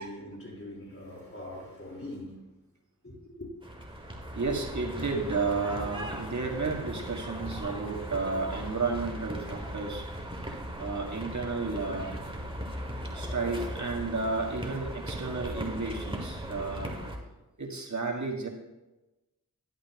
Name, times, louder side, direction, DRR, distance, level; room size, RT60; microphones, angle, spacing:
voice 1, 0.0-2.5 3.0-3.5, left 1 dB, 40° left, 4.1 m, -42 dB
sound 1, 3.6-17.2, right 1 dB, 15° right, 2.0 m, -38 dB
voice 2, 4.3-12.2 13.0-17.0 17.6-18.5, right 4 dB, 55° right, 1.8 m, -32 dB
11.5 x 10.5 x 2.9 m
cardioid pair, 45°, 35 cm